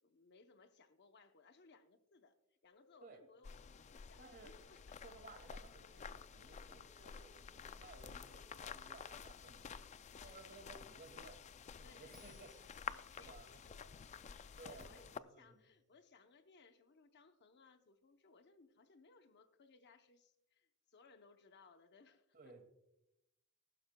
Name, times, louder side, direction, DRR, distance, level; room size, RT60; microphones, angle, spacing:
voice 1, 0.0-2.3 2.6-5.0 8.0-8.4 10.1-10.9 11.8-22.4, left 4 dB, 50° left, 8 dB, 0.7 m, -66 dB
sound 1, 2.6-12.6, left 2 dB, 85° left, 2.3 m, -74 dB
sound 2, 3.4-15.2, left 6 dB, 30° left, 0.3 m, -51 dB
voice 2, 4.2-4.6 5.0-9.8 10.2-11.4 11.8-12.5 13.2-13.5 14.6-15.7 22.3-22.6, right 3 dB, 40° right, 6 dB, 2.1 m, -58 dB
Bell, 12.1-15.4, right 1 dB, ahead, 1.7 m, -70 dB
19.5 x 11.5 x 2.2 m, 0.87 s
head